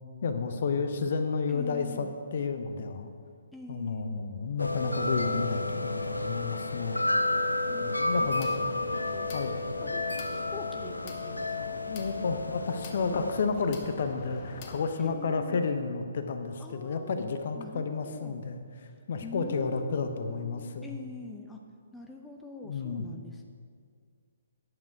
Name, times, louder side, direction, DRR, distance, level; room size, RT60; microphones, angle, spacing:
voice 1, 0.2-2.1 2.3-3.1 3.7-7.0 7.8-8.5 8.8-8.9 9.3-9.6 11.9-18.6 19.1-21.0 22.6-23.1, left 4 dB, 45° left, 7 dB, 0.8 m, -31 dB
voice 2, 1.5-2.1 3.5-4.3 7.7-7.9 8.2-8.8 9.1-9.2 9.8-11.8 13.1-13.3 13.5-13.7 15.0-15.6 16.6-17.2 17.6-18.4 19.2-21.6 21.9-23.5, left 2 dB, 5° left, 1 dB, 0.7 m, -45 dB
sound 1, 4.6-13.4, left 2 dB, 80° left, 0.6 m, -31 dB
sound 2, 8.1-14.8, left 3 dB, 30° left, 1.2 m, -46 dB
9.8 x 7.2 x 5.9 m, 2.1 s
figure-of-eight pair, 130°, 0 cm